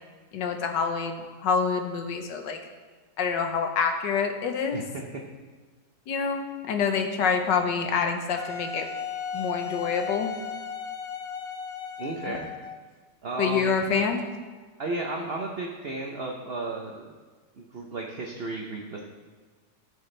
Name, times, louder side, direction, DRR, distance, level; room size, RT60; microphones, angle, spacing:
voice 1, 0.3-2.6 3.2-4.8 6.1-8.9 9.3-10.3 12.3-12.4 13.4-14.3, left 5 dB, 90° left, 5 dB, 1.6 m, -27 dB
voice 2, 4.7-5.0 12.0-12.4 13.2-13.7 14.8-17.1 17.6-19.0, right 2 dB, 45° right, 0 dB, 0.9 m, -33 dB
Wind instrument woodwind instrument, 8.4-12.9, left 6 dB, 65° left, 0.6 m, -35 dB
14.5 x 7.0 x 3.3 m, 1.5 s
omnidirectional pair, 1.9 m